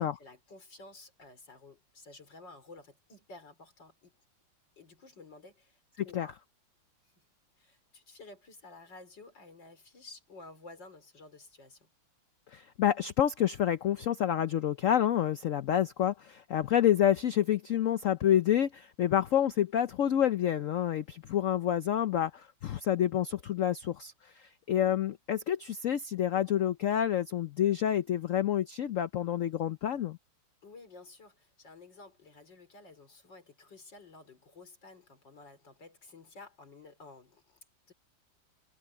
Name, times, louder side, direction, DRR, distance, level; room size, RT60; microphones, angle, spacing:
voice 1, 0.0-4.1 4.8-6.4 7.6-11.9 30.6-37.6 37.9-38.0, left 3 dB, 65° left, 4.9 m, -52 dB
voice 2, 12.5-30.2, left 10 dB, 90° left, 0.7 m, -28 dB
omnidirectional pair, 2.1 m